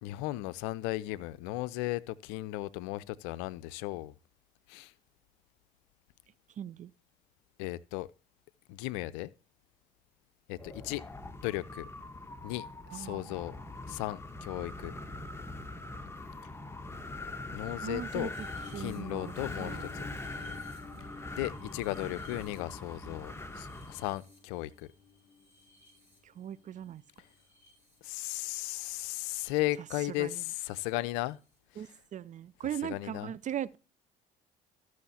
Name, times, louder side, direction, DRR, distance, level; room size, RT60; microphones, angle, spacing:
voice 1, 0.0-4.1 4.7-4.9 7.6-8.1 8.7-9.3 10.5-11.0 11.4-11.8 12.4-12.6 12.9-13.6 13.9-14.9 17.5-18.3 18.8-20.1 21.3-24.9 28.0-31.4 32.8-33.3, left 17 dB, 75° left, 0.5 m, -36 dB
voice 2, 6.6-6.9 12.9-13.4 17.8-18.3 18.7-19.3 19.6-19.9 26.4-27.0 30.2-30.4 31.8-33.8, right 10 dB, 40° right, 0.4 m, -39 dB
Wind, 10.5-24.2, left 2 dB, 10° left, 1.3 m, -43 dB
sound 1, 18.3-26.6 27.2-28.0 29.2-29.5 31.3-31.4, left 3 dB, 10° right, 5.5 m, -51 dB
14.0 x 6.2 x 2.8 m
hypercardioid pair, 55°, 20 cm